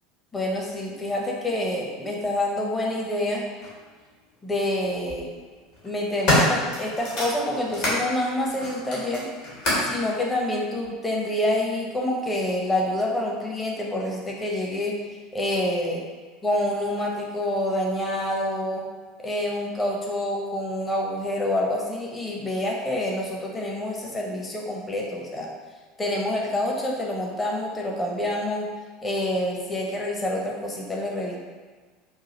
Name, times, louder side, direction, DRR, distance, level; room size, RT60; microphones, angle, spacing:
voice 1, 0.3-3.5 4.4-5.3 5.8-9.3 9.8-15.0 15.3-16.0 16.4-18.8 19.2-25.5 26.0-28.7 29.0-31.4, left 1 dB, 15° left, -2 dB, 0.8 m, -27 dB
sound 1, 3.6-3.7 4.8-5.2 5.7-8.0 8.5-10.0 10.8-10.9, left 1 dB, 50° left, 1.4 m, -26 dB
4.7 x 2.4 x 2.8 m, 1.4 s
figure-of-eight pair, 75°, 0 cm